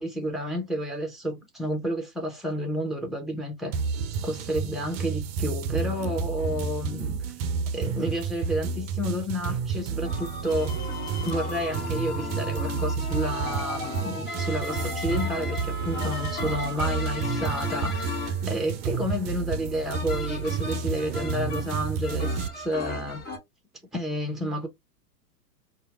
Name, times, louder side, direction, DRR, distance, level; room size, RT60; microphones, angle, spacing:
voice 1, 0.0-3.8 4.2-7.2 7.7-10.8 11.2-23.2 23.9-24.7, equal, ahead, 0.7 m, -30 dB
sound 1, 3.7-22.5, right 5 dB, 40° right, 0.5 m, -30 dB
sound 2, 10.0-23.4, left 3 dB, 20° left, 1.1 m, -35 dB
4.1 x 2.3 x 2.3 m
hypercardioid pair, 110°, 49 cm